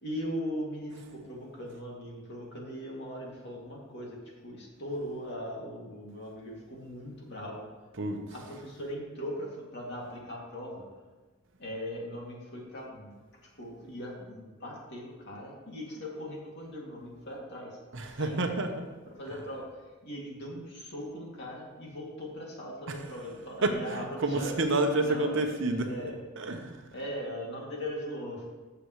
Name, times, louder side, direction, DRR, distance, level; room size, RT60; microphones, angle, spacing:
voice 1, 0.0-4.2 4.4-7.6 8.3-10.8 11.6-13.1 13.6-17.8 18.1-18.5 19.1-19.6 20.0-24.5 25.0-26.2 26.9-28.4, equal, 50° left, -3 dB, 2.4 m, -39 dB
voice 2, 17.9-18.9 23.6-25.9 26.4-26.7, right 2 dB, 60° right, 5 dB, 0.9 m, -29 dB
14.5 x 6.9 x 3.1 m, 1.3 s
head